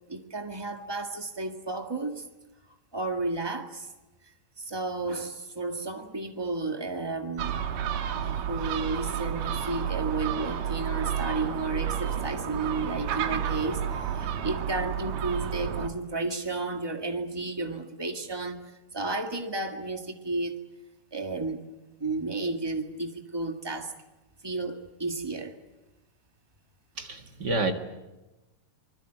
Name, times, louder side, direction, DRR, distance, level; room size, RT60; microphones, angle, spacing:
voice 1, 0.1-2.2 2.9-3.9 4.6-7.6 8.1-18.6 18.9-20.5 21.1-21.6 22.0-23.9 24.4-25.5, right 3 dB, 15° right, 4 dB, 0.9 m, -32 dB
Gull seagull, 7.4-15.9, right 9 dB, 90° right, 3.2 m, -31 dB
voice 2, 27.0-27.7, right 2 dB, 40° right, 5 dB, 1.9 m, -28 dB
25.5 x 21.5 x 9.1 m, 1.0 s
omnidirectional pair, 3.7 m